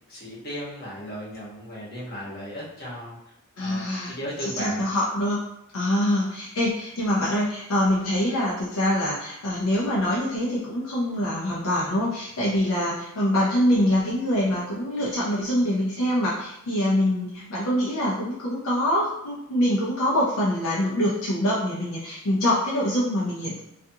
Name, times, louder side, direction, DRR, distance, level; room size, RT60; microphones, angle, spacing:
voice 1, 0.1-3.2 3.6-4.8, equal, 45° left, -7 dB, 1.0 m, -35 dB
voice 2, 3.6-4.1 4.4-5.4 5.7-23.6, left 1 dB, 75° left, -6 dB, 0.5 m, -24 dB
2.4 x 2.3 x 2.7 m, 0.84 s
head